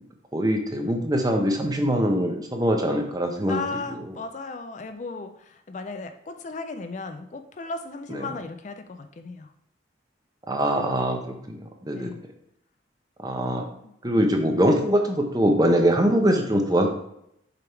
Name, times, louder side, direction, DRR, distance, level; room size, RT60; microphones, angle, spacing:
voice 1, 0.3-3.6 8.1-8.3 10.5-12.1 13.2-13.6 14.0-16.9, equal, 20° right, 3 dB, 0.7 m, -23 dB
voice 2, 3.5-9.5 12.0-12.3 13.8-14.2, left 3 dB, 40° left, 8 dB, 0.4 m, -36 dB
6.8 x 3.5 x 4.5 m, 0.78 s
head